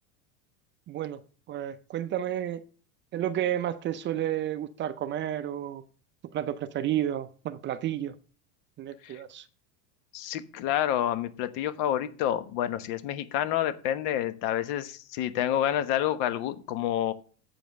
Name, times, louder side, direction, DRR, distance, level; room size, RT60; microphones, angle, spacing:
voice 1, 0.9-1.2 1.5-2.6 3.1-5.8 6.3-8.1 8.8-9.4, right 11 dB, 25° right, 0.5 m, -31 dB
voice 2, 10.1-17.1, left 11 dB, 55° left, 1.2 m, -28 dB
7.9 x 5.2 x 7.4 m
supercardioid pair, 135°, 45 cm